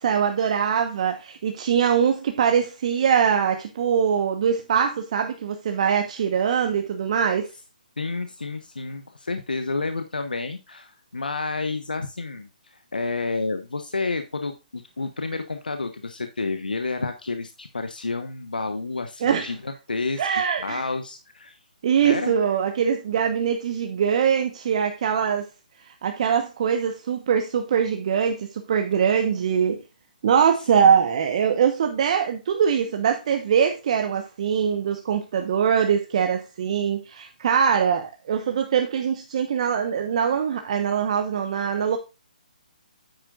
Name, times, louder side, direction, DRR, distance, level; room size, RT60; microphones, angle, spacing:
voice 1, 0.0-7.5 19.2-19.5 20.2-20.8 21.8-25.5 25.8-29.8 30.2-42.0, right 7 dB, 45° right, 1.1 m, -22 dB
voice 2, 8.0-21.6 22.0-22.3, left 3 dB, 85° left, 1.1 m, -30 dB
9.4 x 9.0 x 2.5 m
figure-of-eight pair, 145°, 5 cm